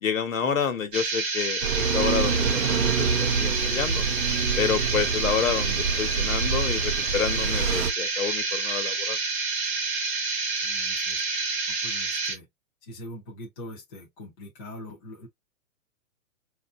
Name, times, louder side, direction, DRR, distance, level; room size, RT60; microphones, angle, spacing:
voice 1, 0.0-4.0 4.6-9.2, left 7 dB, 70° left, 1.2 m, -29 dB
sound 1, 0.9-12.3, right 4 dB, 20° right, 0.7 m, -28 dB
sound 2, 1.6-7.9, right 6 dB, 70° right, 0.7 m, -27 dB
voice 2, 10.6-11.2 11.8-12.5 12.9-15.3, left 1 dB, 15° left, 0.5 m, -42 dB
4.4 x 2.6 x 2.4 m
hypercardioid pair, 160°, 42 cm